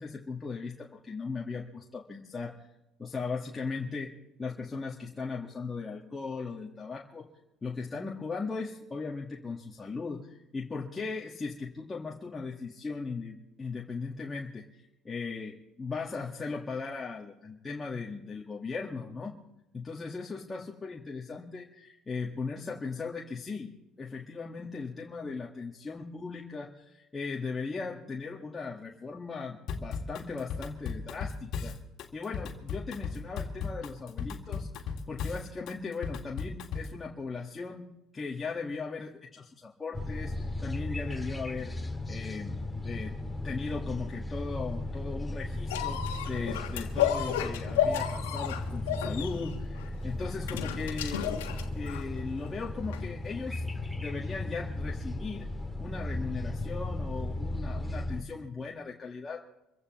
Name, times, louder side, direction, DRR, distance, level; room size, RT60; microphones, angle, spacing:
voice 1, 0.0-2.7 3.0-4.1 4.4-7.3 7.6-19.3 19.7-31.8 32.1-41.7 42.1-51.2 51.7-53.6 53.9-55.5 55.8-59.4, left 4 dB, 25° left, -1 dB, 1.7 m, -38 dB
Drum kit / Drum, 29.7-37.0, left 5 dB, 60° left, 2.0 m, -36 dB
sound 1, 39.9-58.2, left 2 dB, 5° left, 2.3 m, -36 dB
sound 2, 45.7-52.2 52.9-53.0, left 10 dB, 90° left, 1.5 m, -32 dB
26.0 x 15.5 x 3.1 m, 0.92 s
hypercardioid pair, 65°, 0 cm